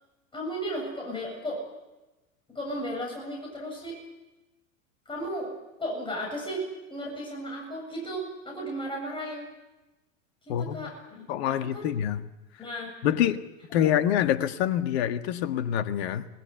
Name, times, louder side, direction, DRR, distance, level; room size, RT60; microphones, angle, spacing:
voice 1, 0.3-1.6 2.5-4.0 5.1-5.5 5.8-9.5 10.5-11.9 12.6-12.9 13.7-13.8, equal, 10° left, -1 dB, 7.9 m, -35 dB
voice 2, 10.5-10.9 11.3-12.2 13.0-13.4 13.7-16.3, left 10 dB, 50° left, 10 dB, 1.7 m, -26 dB
27.5 x 19.5 x 8.2 m, 1.1 s
figure-of-eight pair, 90°, 40 cm